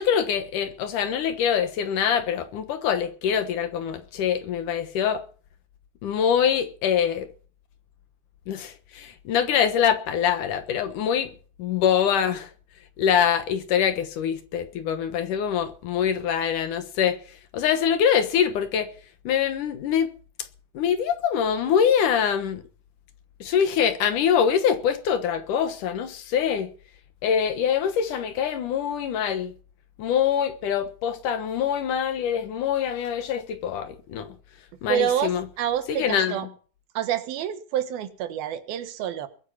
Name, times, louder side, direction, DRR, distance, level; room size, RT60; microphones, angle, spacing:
voice 1, 0.0-5.2 6.0-7.3 8.5-11.3 11.6-12.5 13.0-17.2 17.5-18.9 19.2-20.1 20.7-22.6 23.4-26.7 27.2-29.5 30.0-34.3 34.8-35.5 35.9-36.4, left 8 dB, 65° left, 2.6 m, -24 dB
voice 2, 34.9-36.5 36.9-39.3, right 10 dB, 85° right, 3.2 m, -27 dB
21.5 x 9.2 x 5.8 m
omnidirectional pair, 4.2 m